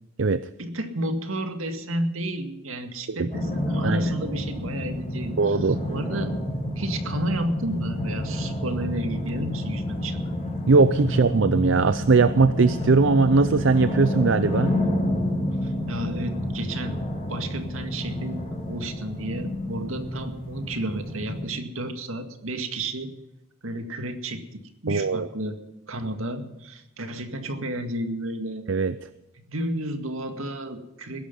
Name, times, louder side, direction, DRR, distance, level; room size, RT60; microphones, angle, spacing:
voice 1, 0.6-6.4 6.8-10.2 15.6-17.0 17.3-18.4 18.7-23.1 23.6-25.6 25.9-28.7 29.4-31.3, right 1 dB, 80° right, 6 dB, 2.1 m, -31 dB
sound 1, 3.3-21.4, left 1 dB, 30° left, 6.6 m, -29 dB
voice 2, 5.4-5.8 10.7-14.8 24.9-25.3 28.7-28.9, right 4 dB, 60° right, 13 dB, 0.5 m, -20 dB
20.5 x 11.5 x 5.5 m, 0.92 s
head